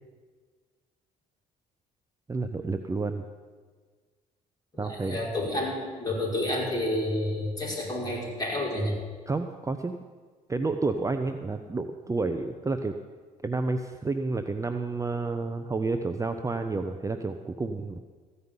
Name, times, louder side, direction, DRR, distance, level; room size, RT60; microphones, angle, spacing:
voice 1, 2.3-3.2 4.8-5.2 9.3-10.0 10.5-12.9 13.4-18.0, right 3 dB, 20° right, 7 dB, 0.7 m, -30 dB
voice 2, 4.7-8.9, left 1 dB, 25° left, -3 dB, 5.1 m, -30 dB
14.5 x 5.5 x 9.8 m, 1.5 s
supercardioid pair, 65°, 17 cm